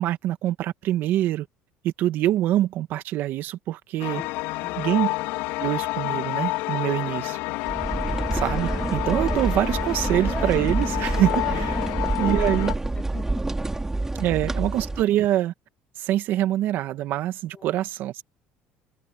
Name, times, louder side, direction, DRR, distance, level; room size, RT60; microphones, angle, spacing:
voice 1, 0.0-1.5 1.8-4.2 4.8-5.1 5.6-7.4 8.3-11.8 12.2-12.7 14.1-15.5 16.0-18.2, right 13 dB, 65° right, 1.7 m, -25 dB
sound 1, 4.0-12.7, left 21 dB, 80° left, 4.3 m, -29 dB
sound 2, 7.7-15.0, right 2 dB, 10° right, 3.4 m, -27 dB
voice 2, 11.7-12.4 13.0-13.4 17.5-17.7, left 6 dB, 30° left, 3.1 m, -41 dB
open air
supercardioid pair, 105°, 4 cm